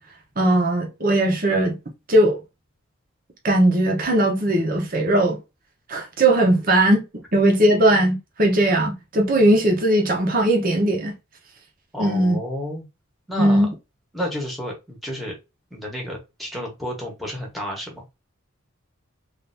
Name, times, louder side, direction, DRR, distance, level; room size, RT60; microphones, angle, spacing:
voice 1, 0.4-1.8 2.1-2.4 3.4-5.4 5.9-7.0 7.3-11.1 12.0-12.4 13.4-13.7, right 1 dB, 40° right, 0.8 m, -18 dB
voice 2, 11.9-12.8 13.3-13.7 14.1-15.3 15.7-18.1, equal, ahead, 1.0 m, -31 dB
3.3 x 2.6 x 2.6 m
head